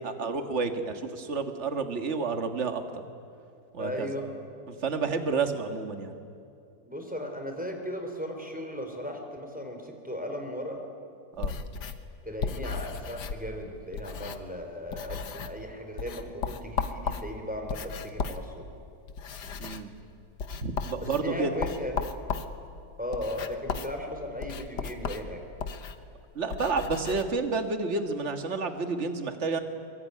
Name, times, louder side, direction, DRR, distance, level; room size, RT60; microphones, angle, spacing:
voice 1, 0.0-2.8 3.7-4.1 4.7-6.1 11.4-11.6 19.6-19.9 20.6-21.5 26.4-29.6, right 4 dB, 40° right, 7 dB, 1.9 m, -30 dB
voice 2, 3.8-4.3 6.8-10.9 12.2-18.7 21.0-22.1 23.0-25.4, equal, 5° right, 3 dB, 3.7 m, -36 dB
sound 1, 11.4-14.6 14.9-15.7 16.0-27.2, left 5 dB, 75° left, 1.8 m, -36 dB
23.5 x 23.0 x 9.6 m, 2.5 s
omnidirectional pair, 1.8 m